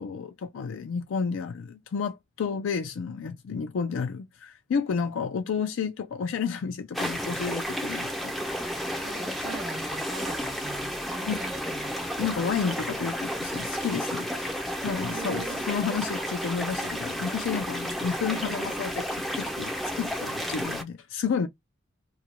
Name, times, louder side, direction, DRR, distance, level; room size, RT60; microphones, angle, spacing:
voice 1, 0.0-8.6 11.3-11.4 12.2-14.6 14.8-21.5, left 6 dB, 75° left, 0.4 m, -31 dB
sound 1, 6.9-20.8, equal, ahead, 0.4 m, -32 dB
voice 2, 9.0-12.1 15.1-15.7 20.4-20.6, right 4 dB, 65° right, 0.8 m, -41 dB
2.4 x 2.1 x 2.9 m
head